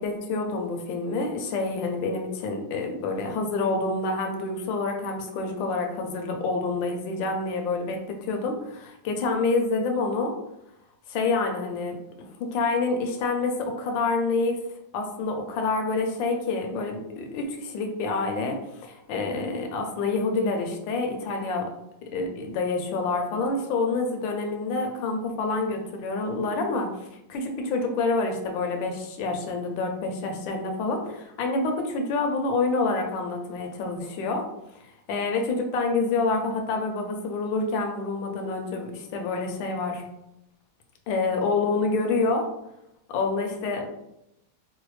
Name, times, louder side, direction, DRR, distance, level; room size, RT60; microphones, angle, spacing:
voice 1, 0.0-10.3 11.1-12.0 12.4-14.6 14.9-21.7 22.1-34.4 35.1-40.0 41.1-42.5 43.1-43.9, left 3 dB, 80° left, 3 dB, 1.3 m, -27 dB
4.9 x 2.1 x 3.1 m, 0.85 s
omnidirectional pair, 2.1 m